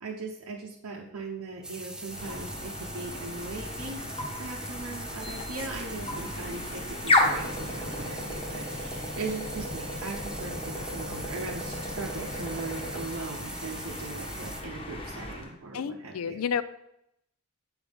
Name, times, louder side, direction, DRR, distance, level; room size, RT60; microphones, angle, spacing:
voice 1, 0.0-4.0 4.4-16.4, right 3 dB, 85° right, -3 dB, 0.8 m, -39 dB
sound 1, 1.6-14.6, right 1 dB, 5° right, 0.4 m, -42 dB
sound 2, 2.1-15.5, left 1 dB, 25° left, 1.0 m, -33 dB
voice 2, 15.7-16.6, left 7 dB, 80° left, 15 dB, 0.4 m, -31 dB
8.1 x 4.8 x 3.5 m, 0.81 s
head